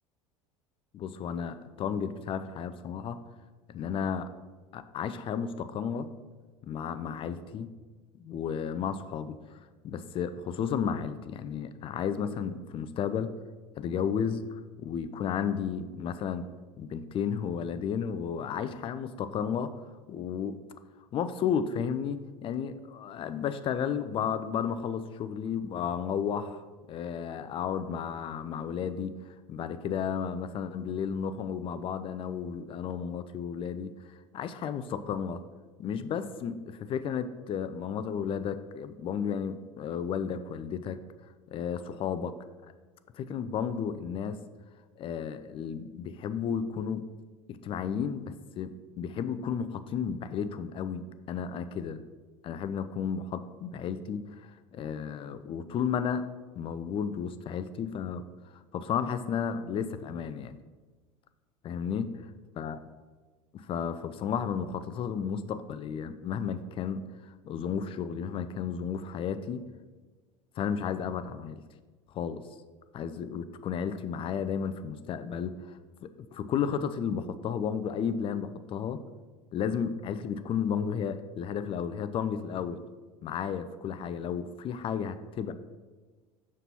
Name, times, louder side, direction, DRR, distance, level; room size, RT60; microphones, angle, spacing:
voice 1, 0.9-3.2 3.7-4.3 4.7-6.1 6.6-7.7 8.2-13.4 13.8-16.5 16.8-19.7 20.1-20.6 21.1-29.2 29.5-33.9 34.3-35.4 35.8-41.0 41.5-42.3 43.1-44.4 45.0-47.1 47.5-52.0 52.4-56.3 56.5-58.2 58.5-60.6 61.6-62.2 62.6-62.8 63.5-69.6 70.6-71.6 72.1-72.4 72.9-79.0 79.5-82.8 83.2-85.5, left 7 dB, 30° left, 12 dB, 0.4 m, -33 dB
6.6 x 6.0 x 4.2 m, 1.4 s
figure-of-eight pair, 70°, 18 cm